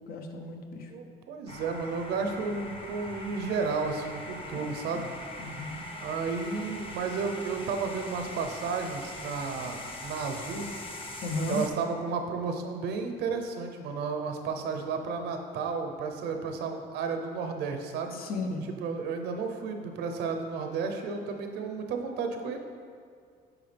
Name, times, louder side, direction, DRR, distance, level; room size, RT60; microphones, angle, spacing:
voice 1, 0.1-0.9 4.5-5.1 5.4-5.8 11.2-11.6 18.1-18.6, left 2 dB, 60° left, 4 dB, 0.9 m, -35 dB
voice 2, 0.9-5.1 5.9-10.7 11.5-18.2 18.7-22.6, right 5 dB, 80° right, 5 dB, 0.8 m, -32 dB
sound 1, 1.5-11.7, left 1 dB, 30° left, 0.9 m, -41 dB
9.8 x 4.7 x 3.4 m, 2.1 s
cardioid pair, 110°, 17 cm